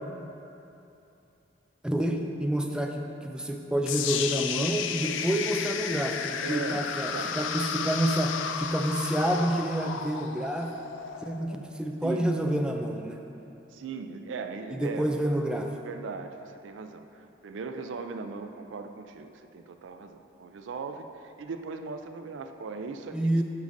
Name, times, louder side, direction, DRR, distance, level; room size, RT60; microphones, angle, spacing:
voice 1, 1.8-10.7 11.2-13.2 14.7-15.7 23.1-23.4, right 1 dB, 5° right, 2 dB, 0.3 m, -28 dB
sound 1, 3.9-11.9, left 7 dB, 90° left, 0.3 m, -33 dB
voice 2, 6.4-7.4 12.0-12.3 13.7-15.1 15.8-23.2, right 4 dB, 85° right, 7 dB, 0.4 m, -39 dB
8.3 x 6.4 x 2.6 m, 2.8 s
head